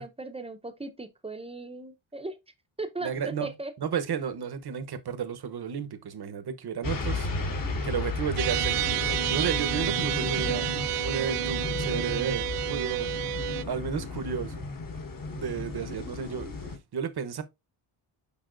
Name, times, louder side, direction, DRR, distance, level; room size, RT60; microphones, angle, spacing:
voice 1, 0.0-2.4 2.8-3.7, right 2 dB, 10° right, 0.8 m, -38 dB
voice 2, 3.0-3.5 3.8-7.3 7.8-9.0 9.3-10.7 11.0-13.1 13.7-14.6 15.3-17.4, right 7 dB, 50° right, 1.0 m, -32 dB
sound 1, 6.8-16.8, left 3 dB, 40° left, 1.4 m, -33 dB
sound 2, 8.4-13.6, right 13 dB, 90° right, 0.6 m, -30 dB
7.0 x 5.3 x 2.5 m
wide cardioid pair, 120°, 50 cm